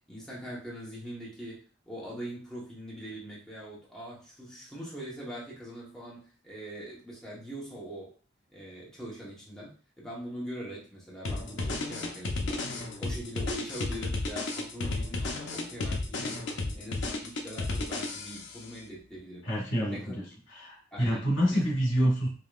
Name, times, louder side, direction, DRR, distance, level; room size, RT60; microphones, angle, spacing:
voice 1, 0.1-8.1 8.5-16.4 16.7-20.1 20.9-21.6, equal, 5° left, -6 dB, 1.1 m, -42 dB
sound 1, 11.3-18.6, left 2 dB, 65° left, 0.7 m, -33 dB
voice 2, 19.4-20.2 20.5-22.3, equal, 85° left, -2 dB, 1.8 m, -27 dB
5.0 x 2.9 x 2.4 m, 0.39 s
head